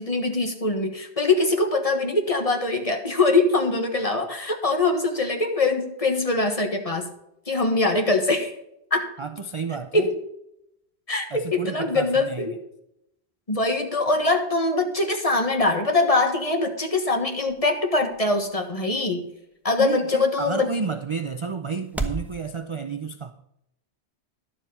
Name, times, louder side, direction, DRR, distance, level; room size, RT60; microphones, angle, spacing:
voice 1, 0.0-7.1 7.5-8.5 8.9-9.1 9.9-10.2 11.1-12.6 13.5-19.2 19.6-20.7, left 3 dB, 30° left, 1.5 m, -23 dB
voice 2, 9.2-10.1 11.3-12.5 19.8-23.3, right 5 dB, 40° right, 0.4 m, -31 dB
sound 1, 16.1-22.3, right 2 dB, ahead, 1.0 m, -39 dB
11.5 x 7.3 x 5.5 m
omnidirectional pair, 1.1 m